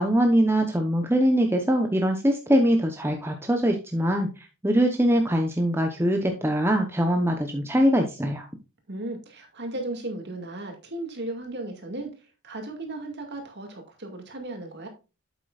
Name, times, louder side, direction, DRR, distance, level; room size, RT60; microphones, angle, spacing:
voice 1, 0.0-4.3 4.6-8.4, equal, 10° right, 0.9 m, -22 dB
voice 2, 8.9-12.1 12.4-14.9, right 2 dB, 50° right, 2.2 m, -35 dB
8.3 x 8.2 x 2.4 m
head